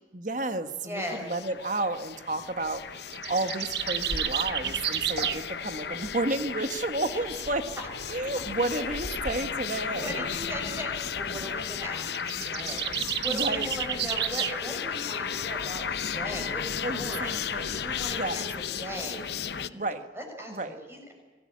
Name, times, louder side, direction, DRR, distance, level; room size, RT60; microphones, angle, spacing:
voice 1, 0.1-7.7 8.1-10.2 13.3-13.7 16.8-17.8 18.1-18.5 19.7-20.1 20.5-20.8, right 2 dB, 45° right, 8 dB, 1.6 m, -31 dB
voice 2, 0.8-1.2 10.0-19.9 20.1-21.1, equal, 15° right, 2 dB, 6.3 m, -39 dB
sound 1, 1.0-19.7, left 7 dB, 70° left, 0.8 m, -35 dB
sound 2, 3.1-5.4 12.1-14.6, right 11 dB, 70° right, 0.9 m, -30 dB
Waves surf, 4.1-9.3, left 2 dB, 50° left, 1.6 m, -42 dB
25.5 x 17.5 x 8.8 m, 1.4 s
head